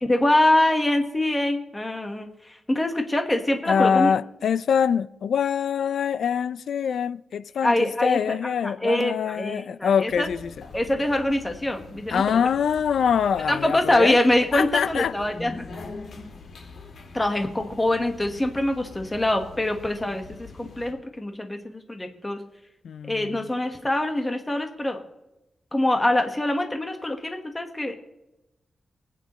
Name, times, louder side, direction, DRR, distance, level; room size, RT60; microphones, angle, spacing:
voice 1, 0.0-4.1 7.6-8.4 8.6-10.3 10.7-12.4 13.5-15.7 17.1-22.4 23.1-25.0 25.7-28.0, left 1 dB, 15° left, 1.4 m, -24 dB
voice 2, 3.7-10.5 12.1-14.2 14.5-15.1 22.8-23.4, left 7 dB, 85° left, 0.4 m, -24 dB
sound 1, 10.1-20.9, left 3 dB, 60° left, 2.0 m, -44 dB
24.0 x 9.1 x 3.1 m
wide cardioid pair, 140°, 0 cm